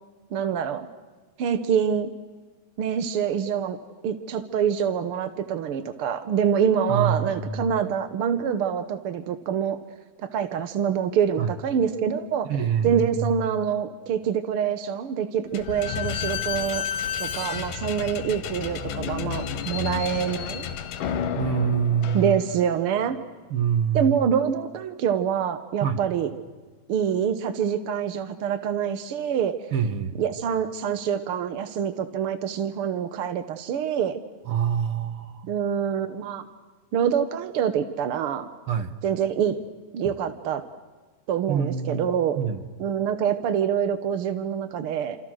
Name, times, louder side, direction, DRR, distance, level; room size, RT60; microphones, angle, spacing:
voice 1, 0.3-0.9 1.4-2.1 2.8-3.8 4.0-9.8 10.2-12.5 12.8-16.8 17.2-20.7 22.1-23.2 23.9-26.3 26.9-29.5 30.2-34.2 35.5-36.4 36.9-38.5 39.0-39.6 39.9-40.6 41.3-42.4 42.8-45.2, right 8 dB, 70° right, 10 dB, 1.3 m, -25 dB
voice 2, 6.9-7.8 11.4-11.5 12.5-13.3 21.4-22.4 23.5-24.1 25.8-26.0 29.7-30.1 34.5-35.5 38.7-38.9 40.0-40.1 41.5-42.1 42.4-42.6, right 7 dB, 50° right, 9 dB, 1.9 m, -25 dB
Slam / Squeak, 15.5-22.8, left 8 dB, 75° left, 3.0 m, -31 dB
29.0 x 27.5 x 6.4 m, 1.3 s
omnidirectional pair, 3.9 m